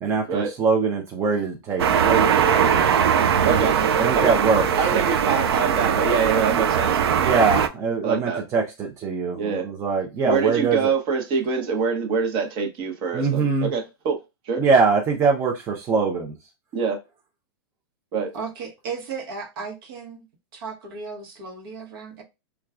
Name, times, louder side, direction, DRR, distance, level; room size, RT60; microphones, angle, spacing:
voice 1, 0.0-2.9 4.0-4.7 4.9-5.0 7.2-10.9 13.1-13.7 14.6-16.3, right 4 dB, 20° right, 0.5 m, -23 dB
sound 1, 1.8-7.7, right 8 dB, 80° right, 0.5 m, -20 dB
voice 2, 3.5-3.8 4.2-4.4 4.8-7.0 8.0-8.4 9.4-9.6 10.3-14.2 14.5-14.6 16.7-17.0 18.1-18.3, right 5 dB, 40° right, 0.9 m, -24 dB
voice 3, 18.3-20.3 20.5-22.2, right 5 dB, 65° right, 1.0 m, -35 dB
4.4 x 2.3 x 2.4 m
hypercardioid pair, 135°, 13 cm